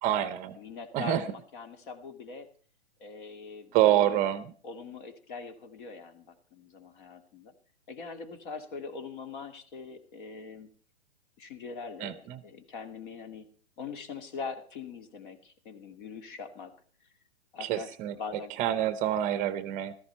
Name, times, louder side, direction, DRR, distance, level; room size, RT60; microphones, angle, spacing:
voice 1, 0.0-0.6 0.9-1.2 3.7-4.5 12.0-12.4 17.6-18.1 18.6-19.9, right 12 dB, 25° right, 14 dB, 0.8 m, -27 dB
voice 2, 0.6-2.5 3.0-4.2 4.6-7.5 7.9-10.8 11.4-12.1 12.4-13.5 13.8-16.7 17.0-17.1 17.5-18.5, left 5 dB, 50° left, 9 dB, 2.6 m, -42 dB
15.5 x 13.5 x 4.4 m, 0.43 s
hypercardioid pair, 125°, 32 cm